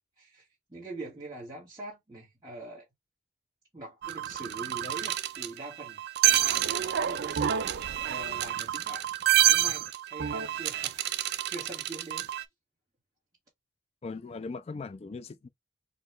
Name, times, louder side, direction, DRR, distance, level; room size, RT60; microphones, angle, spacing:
voice 1, 0.2-2.9 3.7-6.0 7.0-7.7 8.0-9.0 9.5-12.3, right 2 dB, 20° right, 1.3 m, -43 dB
sound 1, 4.0-12.4, right 12 dB, 55° right, 0.3 m, -28 dB
voice 2, 14.0-15.5, left 4 dB, 30° left, 0.3 m, -39 dB
4.0 x 2.3 x 3.1 m
head